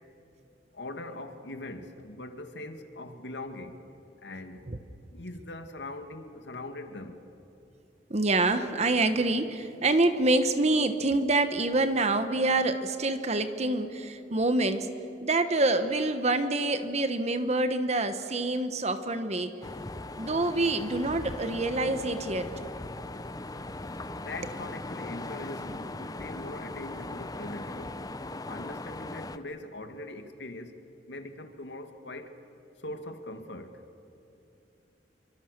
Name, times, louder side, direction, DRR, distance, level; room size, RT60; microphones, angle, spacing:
voice 1, 0.7-3.8 4.2-4.7 5.1-7.2 24.1-28.0 28.5-30.8 31.1-32.3 32.8-33.8, left 2 dB, 80° left, 2.1 m, -41 dB
voice 2, 8.1-14.9 15.2-19.5 20.2-22.5, right 2 dB, 40° right, 1.1 m, -26 dB
sound 1, 19.6-29.4, left 2 dB, 20° left, 0.7 m, -39 dB
27.5 x 24.0 x 6.7 m
head